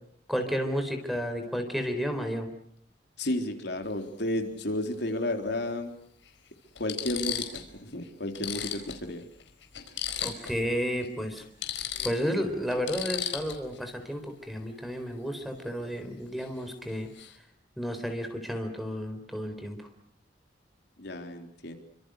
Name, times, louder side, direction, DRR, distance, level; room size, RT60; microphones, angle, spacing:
voice 1, 0.3-2.5 10.2-11.4 12.0-17.1 17.8-19.8, equal, ahead, 6 dB, 4.2 m, -32 dB
voice 2, 3.2-5.9 6.8-7.4 7.8-9.2 21.0-21.7, left 1 dB, 65° left, 4 dB, 3.8 m, -32 dB
sound 1, 3.8-4.0 5.5-5.6 6.3-6.4 6.8-7.7 8.0-8.1 8.3-10.6 10.9-11.1 11.4-13.8 16.4-16.6 16.9-17.4, left 10 dB, 85° left, 4.7 m, -36 dB
29.5 x 25.5 x 6.5 m, 0.64 s
head